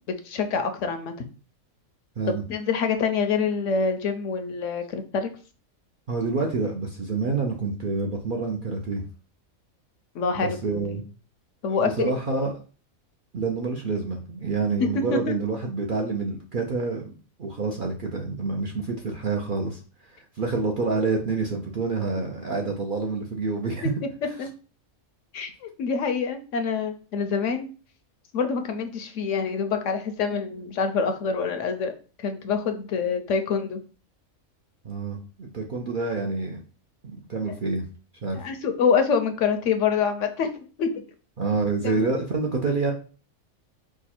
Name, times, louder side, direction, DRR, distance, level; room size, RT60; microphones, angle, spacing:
voice 1, 0.1-1.1 2.3-5.3 10.1-11.0 11.6-12.1 14.8-15.3 24.4-24.5 25.3-27.7 28.3-31.9 32.2-33.8 38.3-41.0 41.8-42.0, left 5 dB, 70° left, 7 dB, 0.9 m, -26 dB
voice 2, 6.1-9.0 10.3-11.0 11.7-12.5 13.3-23.9 24.2-24.3 34.8-36.6 37.0-37.8 38.2-38.4 41.4-42.9, right 4 dB, 55° right, 0 dB, 0.6 m, -28 dB
4.7 x 2.3 x 4.2 m, 0.37 s
omnidirectional pair, 1.5 m